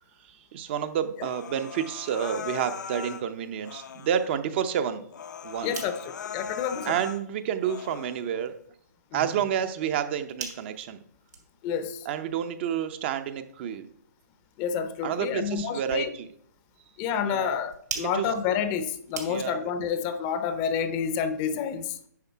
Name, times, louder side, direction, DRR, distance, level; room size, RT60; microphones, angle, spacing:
voice 1, 0.2-5.1 5.4-5.8 6.8-8.6 9.1-11.0 12.1-13.9 15.0-16.3 17.2-17.6 18.0-18.3 19.3-19.6, right 9 dB, 40° right, 10 dB, 0.6 m, -29 dB
Human voice, 1.2-3.2 3.6-4.3 4.7-4.8 5.1-7.2 7.6-8.2, left 7 dB, 75° left, 0.6 m, -39 dB
sound 1, 5.5-19.8, right 5 dB, 75° right, 3.4 m, -46 dB
voice 2, 5.6-7.0 9.1-9.3 11.6-12.1 14.6-16.1 17.0-22.0, left 7 dB, 25° left, 11 dB, 0.6 m, -29 dB
9.5 x 5.3 x 4.6 m, 0.65 s
hypercardioid pair, 145°, 10 cm